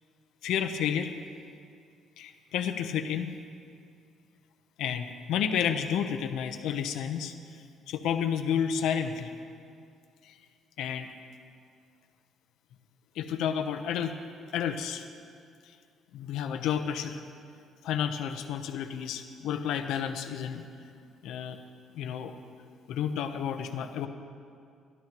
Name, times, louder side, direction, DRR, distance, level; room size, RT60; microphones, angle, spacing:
voice 1, 0.4-1.1 2.2-3.3 4.8-7.3 7.9-9.3 10.2-10.4 10.8-11.1 13.1-14.1 14.5-15.0 16.1-17.2 17.8-20.6 21.2-21.6 21.9-22.3 22.9-24.1, left 8 dB, 80° left, 6 dB, 0.9 m, -31 dB
30.0 x 12.5 x 3.1 m, 2.3 s
cardioid pair, 170°, 0 cm